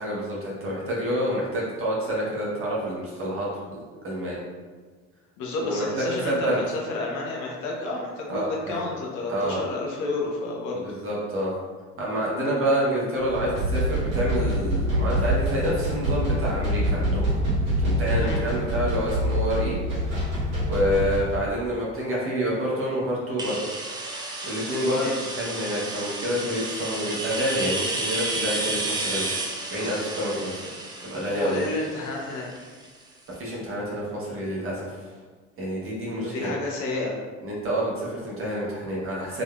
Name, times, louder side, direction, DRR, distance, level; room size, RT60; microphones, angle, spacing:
voice 1, 0.0-4.4 5.6-6.6 8.3-8.8 9.3-9.6 10.8-11.5 12.0-17.2 17.8-19.8 20.7-23.6 24.4-25.1 25.3-30.6 31.0-31.6 33.4-35.1 35.6-36.5 37.4-39.4, equal, 35° right, -5 dB, 1.3 m, -28 dB
voice 2, 5.4-11.0 18.2-18.4 24.9-25.3 31.3-32.7 36.2-37.2, left 2 dB, 50° left, -2 dB, 0.8 m, -30 dB
sound 1, 13.2-21.4, equal, 65° right, 1.5 m, -25 dB
sound 2, 23.4-33.0, right 2 dB, 10° right, 0.4 m, -32 dB
3.7 x 3.4 x 2.3 m, 1.4 s
figure-of-eight pair, 55°, 38 cm